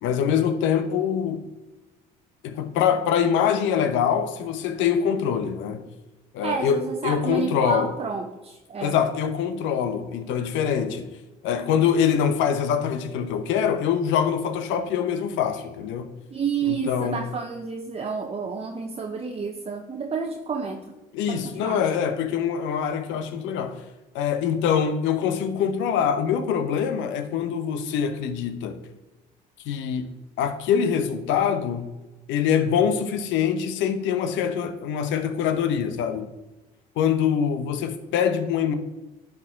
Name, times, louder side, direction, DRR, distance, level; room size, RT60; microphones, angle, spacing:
voice 1, 0.0-1.4 2.4-5.8 6.3-7.9 8.8-11.1 11.4-16.1 16.7-17.2 21.1-23.8 24.1-28.8 29.6-30.1 30.4-31.9 32.3-36.3 37.0-38.7, left 8 dB, 70° left, 0.9 m, -24 dB
voice 2, 6.4-9.0 16.3-21.0 21.3-21.8, right 5 dB, 30° right, 0.9 m, -30 dB
11.0 x 4.9 x 3.7 m
hypercardioid pair, 60°, 20 cm